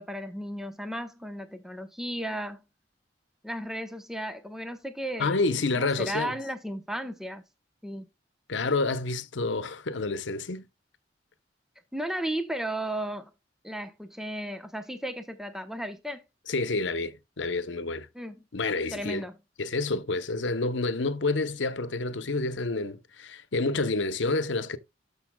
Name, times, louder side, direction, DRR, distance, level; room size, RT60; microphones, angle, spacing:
voice 1, 0.0-2.6 3.4-5.4 5.7-7.4 7.8-8.1 11.9-13.3 13.6-16.2 18.1-18.3 18.9-19.4, right 1 dB, 5° right, 0.8 m, -34 dB
voice 2, 5.2-6.3 8.5-10.7 16.5-18.1 18.5-19.2 19.6-24.8, left 3 dB, 85° left, 0.9 m, -29 dB
13.5 x 5.4 x 2.2 m
head